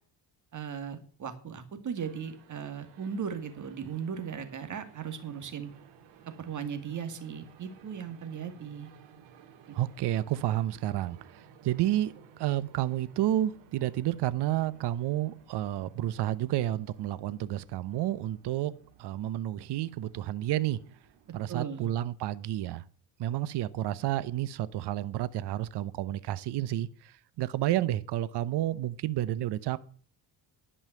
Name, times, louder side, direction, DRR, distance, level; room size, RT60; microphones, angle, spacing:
voice 1, 0.5-5.7 6.4-8.9 9.7-9.8 21.5-21.9, right 7 dB, 45° right, 2.2 m, -37 dB
sound 1, 2.0-21.6, right 7 dB, 85° right, 2.2 m, -57 dB
voice 2, 9.7-18.7 19.0-20.8 21.3-22.8 23.2-29.8, right 13 dB, 70° right, 0.9 m, -30 dB
11.0 x 5.6 x 8.8 m
cardioid pair, 105°, 42 cm